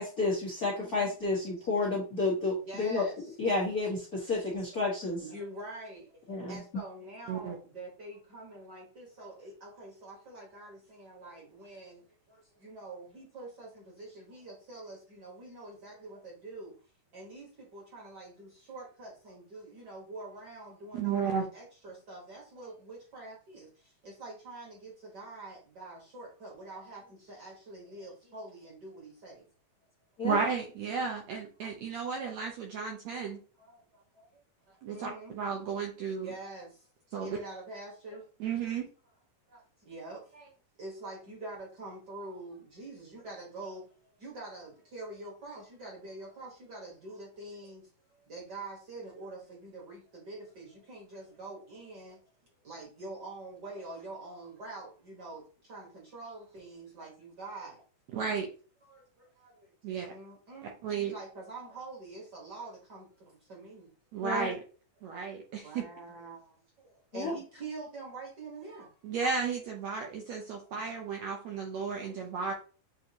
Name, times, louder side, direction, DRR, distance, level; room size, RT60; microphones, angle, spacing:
voice 1, 0.0-3.1 3.4-5.2 6.3-6.6 30.2-30.4 64.2-64.5 67.1-67.3, left 3 dB, 85° left, -4 dB, 0.8 m, -31 dB
voice 2, 0.6-1.3 1.5-1.7 2.6-3.3 4.6-4.9 5.2-16.7 17.1-29.4 32.8-32.9 33.2-35.4 36.2-38.2 39.5-40.5 40.8-52.2 52.6-57.8 58.8-63.9 65.1-65.3 65.6-68.9 70.6-71.1 72.0-72.3, right 2 dB, 50° right, -2 dB, 1.3 m, -46 dB
voice 3, 20.9-21.5 30.2-33.4 34.8-36.3 37.1-37.4 38.4-38.9 58.1-58.5 59.8-60.1 60.6-61.1 64.1-64.6 65.0-65.8 69.0-72.5, right 5 dB, 75° right, 1 dB, 1.6 m, -33 dB
7.0 x 2.6 x 2.8 m, 0.38 s
omnidirectional pair, 3.8 m